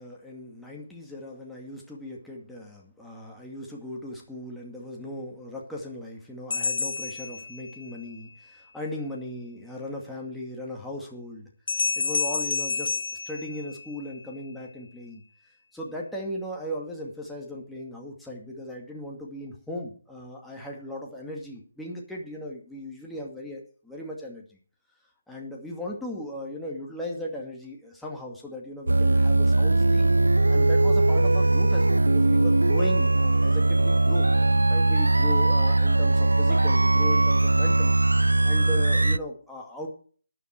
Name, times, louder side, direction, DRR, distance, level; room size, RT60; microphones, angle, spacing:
voice 1, 0.0-11.5 11.9-15.2 15.7-24.6 25.3-30.1 30.5-34.3 34.7-38.0 38.4-39.9, left 1 dB, ahead, -2 dB, 2.3 m, -37 dB
sound 1, 6.5-8.0 11.7-14.2, left 4 dB, 55° left, 0.9 m, -29 dB
sound 2, 28.9-39.2, right 2 dB, 85° right, 0.4 m, -20 dB
13.5 x 9.6 x 4.6 m, 0.43 s
figure-of-eight pair, 150°, 0 cm